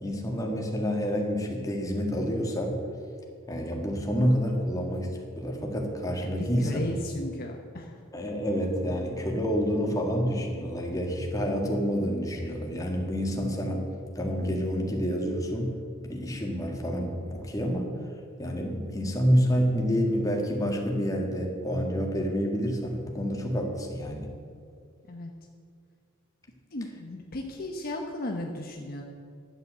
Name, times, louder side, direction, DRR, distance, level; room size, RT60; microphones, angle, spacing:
voice 1, 0.0-2.8 3.5-6.8 8.1-13.9 14.2-15.7 16.1-18.0 18.4-24.3, equal, 15° left, 0 dB, 1.7 m, -28 dB
voice 2, 6.2-8.0 25.1-25.3 26.7-29.0, left 1 dB, 45° left, 2 dB, 0.9 m, -35 dB
11.5 x 7.9 x 7.7 m, 2.3 s
head